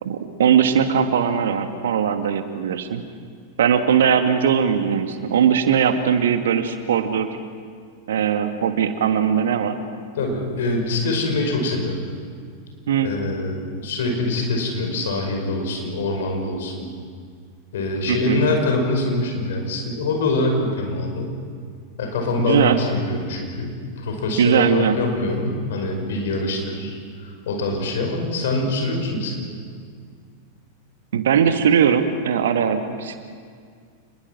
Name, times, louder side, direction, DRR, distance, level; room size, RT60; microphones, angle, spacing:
voice 1, 0.0-3.0 3.6-7.4 8.1-9.8 12.9-13.1 18.1-18.4 22.4-22.8 24.4-25.0 31.1-33.2, right 8 dB, 60° right, 8 dB, 1.7 m, -20 dB
voice 2, 10.2-12.0 13.0-16.9 17.7-21.3 22.0-27.0 27.2-29.4, left 2 dB, 60° left, 2 dB, 5.4 m, -24 dB
28.0 x 21.5 x 6.1 m, 2.1 s
figure-of-eight pair, 90°, 0 cm